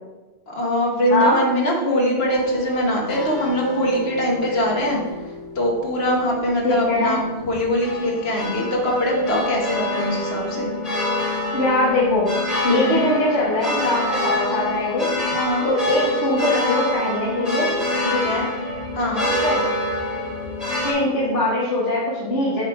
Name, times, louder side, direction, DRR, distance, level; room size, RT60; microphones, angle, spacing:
voice 1, 0.5-5.0 5.5-7.2 7.5-10.7 12.6-13.0 15.3-15.7 18.0-18.5 18.9-19.3, equal, 60° left, -2 dB, 1.7 m, -22 dB
sound 1, 2.3-20.9, left 1 dB, 30° left, 2.0 m, -27 dB
voice 2, 6.6-7.2 11.5-12.3 12.7-15.1 15.6-17.7 18.1-18.2 19.4-19.6 20.8-22.6, left 1 dB, 80° left, -6 dB, 1.6 m, -21 dB
8.1 x 3.2 x 4.7 m, 1.2 s
omnidirectional pair, 1.2 m